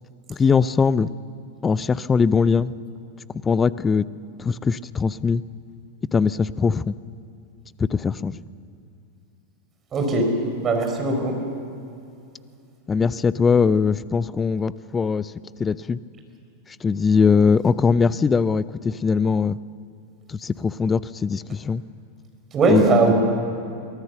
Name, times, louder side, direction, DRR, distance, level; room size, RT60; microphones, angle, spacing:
voice 1, 0.3-1.1 1.6-2.7 3.4-4.0 4.4-5.4 6.1-6.9 7.8-8.4 12.9-15.3 15.6-16.0 16.8-19.6 20.3-21.8 22.7-22.8, left 5 dB, 15° left, 19 dB, 0.5 m, -21 dB
voice 2, 9.9-10.3 10.6-11.4 22.5-23.1, right 3 dB, 25° right, 3 dB, 4.4 m, -19 dB
23.0 x 17.5 x 6.8 m, 2.6 s
figure-of-eight pair, 90°, 0 cm